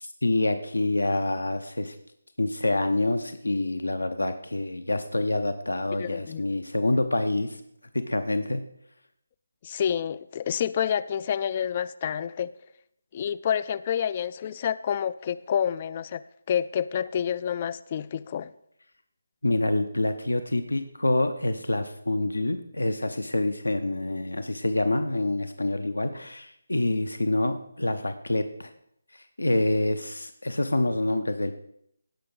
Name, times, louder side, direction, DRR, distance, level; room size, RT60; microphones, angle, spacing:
voice 1, 0.0-2.0 2.4-7.6 7.9-8.6 19.4-28.7 29.1-31.6, left 2 dB, 80° left, 9 dB, 0.7 m, -27 dB
voice 2, 6.0-6.4 9.6-12.5 13.1-18.5, left 8 dB, 30° left, 17 dB, 0.3 m, -28 dB
17.0 x 5.8 x 3.9 m, 0.74 s
figure-of-eight pair, 150°, 0 cm